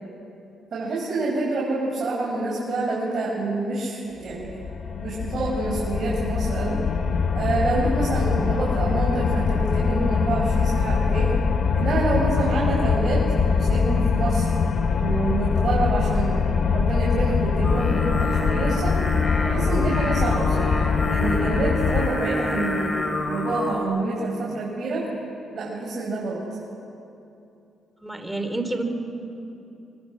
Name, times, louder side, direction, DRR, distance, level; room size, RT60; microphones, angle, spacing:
voice 1, 0.7-4.5 5.0-6.7 7.3-11.3 11.7-13.2 13.5-14.5 15.0-18.9 19.4-20.7 21.1-23.0 23.3-25.0 25.5-26.4, right 3 dB, 50° right, -5 dB, 6.8 m, -27 dB
sound 1, 4.3-22.1, left 5 dB, 55° left, 1.2 m, -23 dB
Singing, 17.6-23.8, left 2 dB, 30° left, 4.4 m, -28 dB
voice 2, 28.0-28.8, right 2 dB, 5° right, 6 dB, 3.8 m, -28 dB
26.0 x 25.0 x 8.7 m, 2.8 s
cardioid pair, 90°, 0 cm